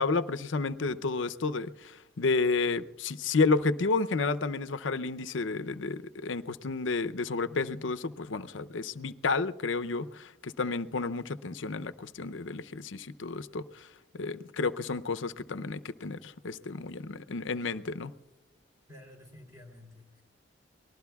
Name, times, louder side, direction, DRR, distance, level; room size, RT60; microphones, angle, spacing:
voice 1, 0.0-13.9 14.1-18.1, left 4 dB, 85° left, 0.6 m, -31 dB
voice 2, 18.9-20.2, left 1 dB, 15° right, 3.3 m, -51 dB
24.5 x 19.5 x 2.3 m
head